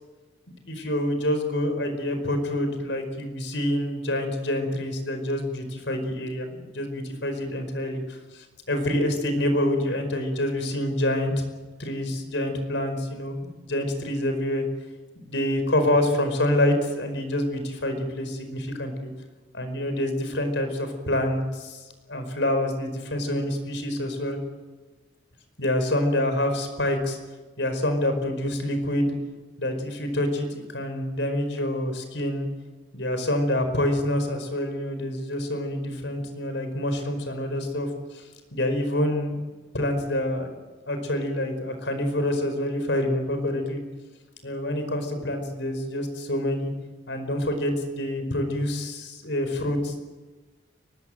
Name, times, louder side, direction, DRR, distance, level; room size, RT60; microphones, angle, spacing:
voice 1, 0.7-8.0 8.3-11.3 11.8-14.6 15.2-19.1 19.5-21.8 22.1-24.4 25.6-27.2 27.6-29.1 29.6-32.5 32.9-37.9 38.1-38.2 38.5-39.4 39.7-40.5 40.9-43.8 44.4-46.7 47.1-50.0, left 1 dB, 80° left, 7 dB, 5.0 m, -27 dB
23.5 x 20.0 x 9.2 m, 1.3 s
head